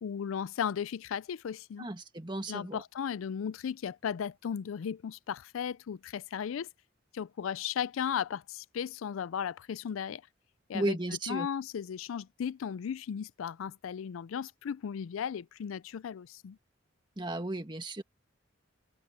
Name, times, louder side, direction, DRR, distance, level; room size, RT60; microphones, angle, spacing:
voice 1, 0.0-1.9 2.5-6.7 7.1-10.2 10.7-11.0 11.3-16.6, left 8 dB, 90° left, 0.4 m, -36 dB
voice 2, 1.8-2.8 10.7-11.5 17.2-18.0, right 2 dB, 25° right, 1.8 m, -34 dB
head